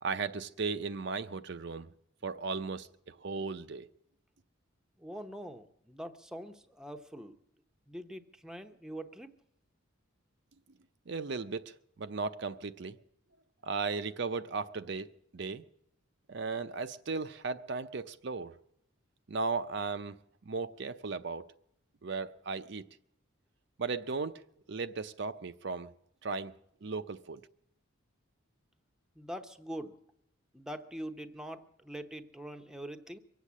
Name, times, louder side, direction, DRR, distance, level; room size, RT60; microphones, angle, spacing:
voice 1, 0.0-1.9 2.2-3.9 11.1-13.0 13.6-15.1 15.3-15.6 16.3-18.5 19.3-20.2 20.5-21.5 22.0-22.8 23.8-24.4 24.7-25.9 26.2-26.5 26.8-27.4, right 4 dB, 55° right, 0.6 m, -36 dB
voice 2, 5.0-7.4 7.9-9.3 29.2-30.0 30.5-33.2, equal, 5° right, 0.8 m, -43 dB
23.5 x 8.3 x 7.3 m
head